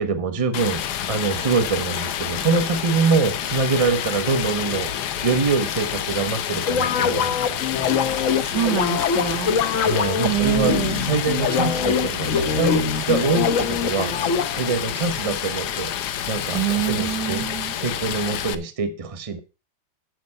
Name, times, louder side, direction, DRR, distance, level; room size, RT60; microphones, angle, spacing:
voice 1, 0.0-4.9 5.2-7.5 9.7-14.1 14.5-15.9 16.3-17.5 17.7-19.4, right 4 dB, 25° right, 0.9 m, -24 dB
Stream, 0.5-18.5, left 9 dB, 70° left, 1.3 m, -28 dB
sound 1, 6.6-14.8, left 6 dB, 55° left, 1.1 m, -23 dB
voice 2, 8.4-9.6 10.2-11.1 16.5-17.7, right 12 dB, 80° right, 1.8 m, -25 dB
9.3 x 5.3 x 6.4 m
omnidirectional pair, 1.8 m